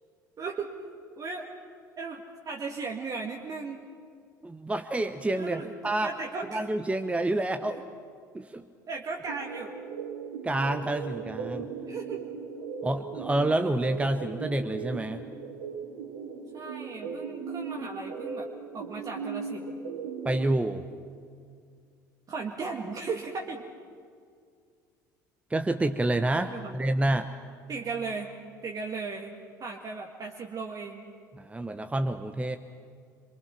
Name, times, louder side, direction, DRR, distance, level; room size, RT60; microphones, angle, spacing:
voice 1, 0.4-0.7 1.2-1.5 2.0-3.8 5.4-6.7 7.6-7.8 8.9-9.8 11.8-12.3 16.5-18.5 18.7-19.7 22.3-23.7 26.5-26.8 27.7-28.3 28.6-29.3 29.6-31.0, right 4 dB, 35° right, 1 dB, 1.9 m, -36 dB
voice 2, 4.4-6.1 6.5-7.8 8.3-8.6 10.4-11.7 12.8-15.2 20.2-20.8 25.5-27.3 31.3-32.6, right 1 dB, 10° right, 8 dB, 1.0 m, -28 dB
sound 1, 9.3-20.5, right 5 dB, 70° right, 2.6 m, -38 dB
27.5 x 23.5 x 6.0 m, 2.2 s
figure-of-eight pair, 65°, 10 cm